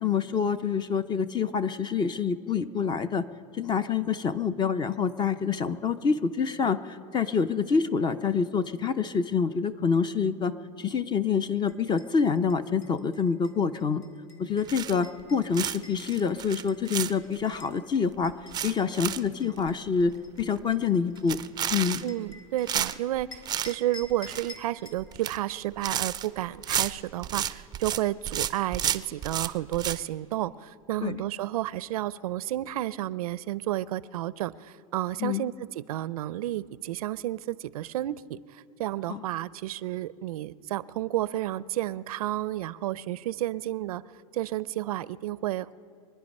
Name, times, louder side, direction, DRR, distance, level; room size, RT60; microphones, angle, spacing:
voice 1, 0.0-3.2 3.5-10.5 10.8-14.0 14.4-18.3 18.6-20.1 20.4-21.4 21.7-22.0 31.0-31.2 35.2-35.5 39.1-39.2, left 6 dB, 25° left, 14 dB, 0.6 m, -27 dB
sound 1, 11.7-17.8 18.2-22.9 23.3-25.0, left 2 dB, 70° left, 2.5 m, -50 dB
sound 2, 14.7-15.2 15.5-17.5 18.0-18.1 18.3-19.3 19.6-19.7 20.1-20.2 20.4-20.7 21.2-22.3 22.7-23.7 24.0-24.6 25.0-25.4 25.6-28.0 28.3-30.0, right 10 dB, 20° right, 0.4 m, -31 dB
voice 2, 22.0-44.0 44.3-45.7, right 14 dB, 90° right, 18 dB, 0.5 m, -31 dB
24.5 x 10.0 x 5.4 m, 2.3 s
supercardioid pair, 120°, 18 cm